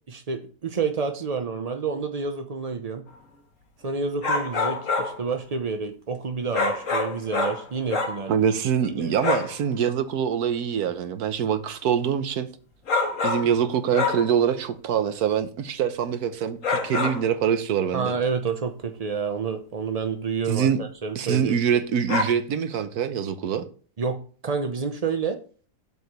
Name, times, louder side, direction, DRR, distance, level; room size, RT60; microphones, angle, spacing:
voice 1, 0.1-3.0 3.8-8.5 8.8-9.1 17.9-21.6 24.0-25.4, right 5 dB, 50° right, 0.4 m, -29 dB
sound 1, 4.2-5.2 6.5-8.2 9.2-9.6 12.9-13.6 13.9-14.4 16.6-17.3 22.1-22.2, left 4 dB, 50° left, 1.9 m, -26 dB
voice 2, 8.3-12.5 13.2-18.2 20.5-20.8 21.1-23.7, right 8 dB, 65° right, 1.3 m, -24 dB
7.8 x 4.8 x 6.7 m
omnidirectional pair, 1.8 m